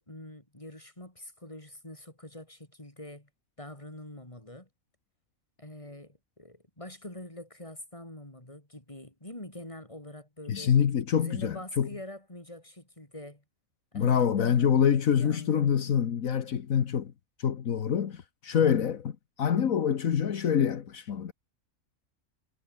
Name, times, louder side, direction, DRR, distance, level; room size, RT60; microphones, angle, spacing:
voice 1, 0.0-3.3 3.6-4.7 5.6-10.8 11.1-13.4 13.9-15.8, left 1 dB, 20° left, 5.0 m, -45 dB
voice 2, 10.5-11.9 13.9-17.1 17.4-21.3, left 8 dB, 75° left, 1.6 m, -26 dB
omnidirectional pair, 1.4 m